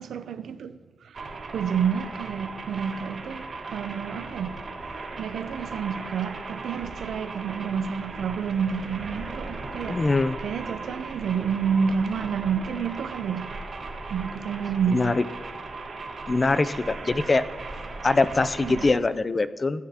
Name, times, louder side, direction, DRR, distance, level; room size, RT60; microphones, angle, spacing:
voice 1, 0.0-10.1 10.4-15.2 17.9-18.1 18.6-18.8, right 7 dB, 85° right, 0.5 m, -30 dB
sound 1, 1.1-18.9, right 3 dB, 55° right, 1.8 m, -37 dB
voice 2, 9.9-10.3 14.9-15.1 16.3-17.4 18.0-19.8, left 3 dB, 30° left, 0.4 m, -23 dB
15.5 x 9.3 x 2.8 m
wide cardioid pair, 135°, 0 cm